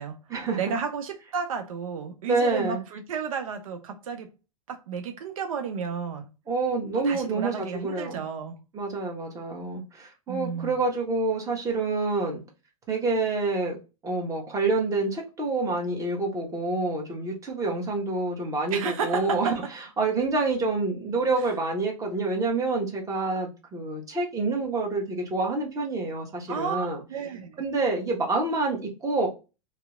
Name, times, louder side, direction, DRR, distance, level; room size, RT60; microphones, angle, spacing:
voice 1, 0.6-4.3 4.7-6.3 7.0-8.6 10.3-10.8 18.7-19.6 26.5-27.6, right 6 dB, 75° right, 0.5 m, -32 dB
voice 2, 2.3-2.8 6.5-8.2 8.7-12.4 12.9-13.8 14.0-19.5 20.0-27.0 27.6-29.3, right 3 dB, 20° right, 1.0 m, -27 dB
2.7 x 2.0 x 2.3 m
hypercardioid pair, 110°, 18 cm